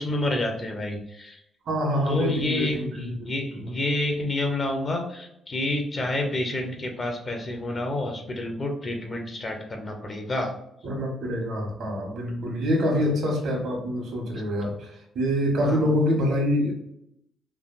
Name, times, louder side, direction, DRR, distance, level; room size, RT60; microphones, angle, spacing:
voice 1, 0.0-1.4 2.1-10.5 12.9-13.0 15.6-15.9, left 1 dB, 35° left, 3 dB, 0.7 m, -29 dB
voice 2, 1.7-3.7 10.8-16.7, equal, 75° right, 0 dB, 1.3 m, -26 dB
3.2 x 2.5 x 2.5 m, 0.76 s
cardioid pair, 90°, 0 cm